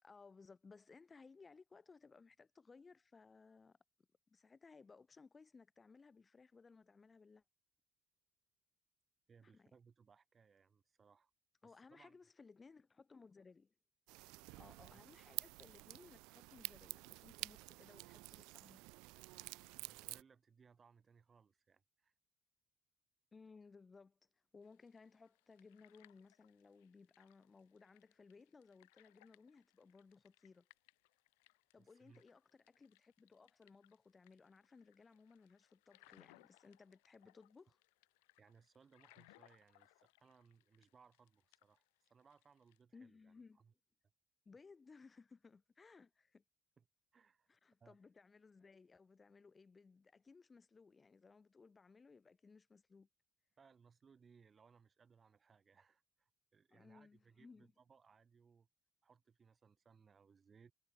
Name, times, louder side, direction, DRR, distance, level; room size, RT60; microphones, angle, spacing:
voice 1, 0.0-3.8 4.3-7.4 9.4-9.7 11.6-13.7 14.6-18.8 23.3-30.7 31.7-37.8 42.9-43.6 44.5-46.4 47.5-53.1 56.7-57.7, left 4 dB, 30° left, 6.0 m, -62 dB
voice 2, 9.3-11.3 11.6-12.2 14.9-15.0 19.8-22.1 31.8-32.2 38.4-43.7 46.8-46.9 47.1-47.5 47.8-48.0 53.6-58.7 59.0-60.7, right 6 dB, 35° right, 4.0 m, -68 dB
sound 1, 14.1-20.2, right 26 dB, 65° right, 0.9 m, -50 dB
sound 2, 24.6-42.8, left 26 dB, 70° left, 5.6 m, -71 dB
figure-of-eight pair, 50°, 0 cm